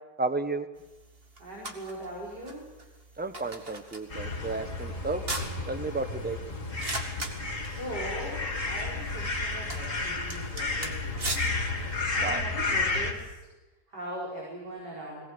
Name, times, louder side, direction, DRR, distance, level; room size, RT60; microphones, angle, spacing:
voice 1, 0.2-0.7 3.2-5.2 5.7-6.4 12.2-12.4, right 3 dB, 5° right, 9 dB, 0.8 m, -32 dB
sound 1, 0.8-12.3, right 2 dB, 35° right, 2.4 m, -41 dB
voice 2, 1.4-2.7 7.2-13.4 13.9-15.2, right 1 dB, 70° right, -4 dB, 5.7 m, -41 dB
sound 2, 4.1-13.1, left 3 dB, 45° left, 3.2 m, -32 dB
21.5 x 19.0 x 7.9 m, 1.1 s
omnidirectional pair, 1.9 m